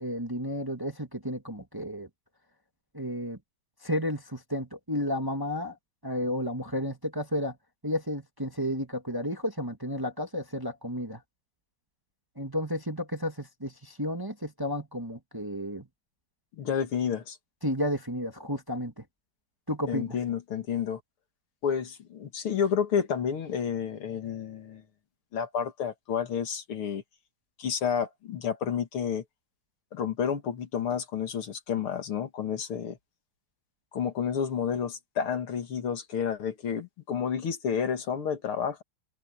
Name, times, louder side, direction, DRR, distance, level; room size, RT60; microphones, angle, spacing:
voice 1, 0.0-2.1 2.9-3.4 3.8-5.7 6.0-7.5 7.8-11.2 12.4-15.9 17.6-19.0 19.7-20.2, equal, 10° right, 1.5 m, -32 dB
voice 2, 16.6-17.4 19.9-21.0 21.6-24.8 25.3-27.0 27.6-29.2 29.9-33.0 33.9-38.8, left 7 dB, 75° left, 2.8 m, -30 dB
omnidirectional pair, 2.4 m